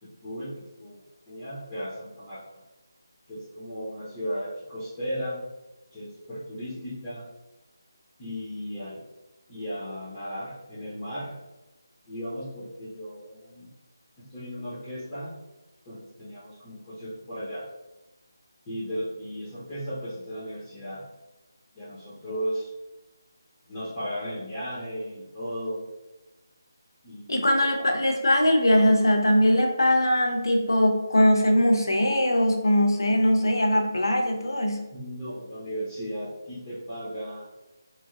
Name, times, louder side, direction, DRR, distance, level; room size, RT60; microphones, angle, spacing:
voice 1, 0.0-2.4 3.3-5.4 5.9-7.3 8.2-9.0 9.5-11.4 12.1-13.7 14.2-15.3 15.9-17.7 18.7-21.0 21.7-22.7 23.7-25.8 27.0-27.9 34.9-37.5, equal, 20° left, -12 dB, 0.7 m, -36 dB
voice 2, 27.3-34.9, left 1 dB, 85° left, 3 dB, 0.6 m, -21 dB
3.0 x 2.5 x 2.4 m, 1.0 s
figure-of-eight pair, 165°, 2 cm